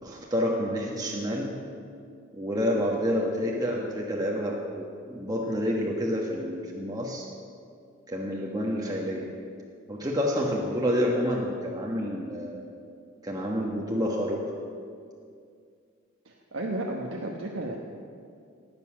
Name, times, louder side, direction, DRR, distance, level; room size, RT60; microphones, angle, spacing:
voice 1, 0.0-1.6 2.3-7.2 8.1-9.3 9.9-12.6 13.2-14.5, equal, 20° right, -3 dB, 1.3 m, -28 dB
voice 2, 16.2-17.8, right 1 dB, 75° right, -1 dB, 1.2 m, -33 dB
18.5 x 8.2 x 6.4 m, 2.3 s
head